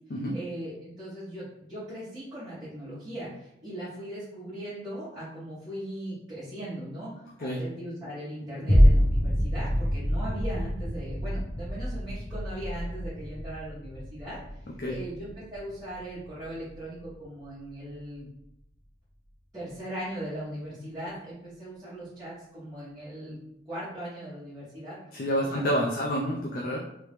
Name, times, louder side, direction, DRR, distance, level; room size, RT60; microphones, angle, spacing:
voice 1, 0.3-7.1 7.4-14.4 14.9-18.3 19.5-23.4 23.6-25.0 25.4-25.6, right 1 dB, 20° right, -14 dB, 1.4 m, -39 dB
sound 1, 8.7-17.2 17.7-17.8, equal, 35° left, 0.8 m, -26 dB
voice 2, 25.1-26.8, equal, 50° left, -1 dB, 0.4 m, -28 dB
3.1 x 2.9 x 3.2 m, 0.79 s
head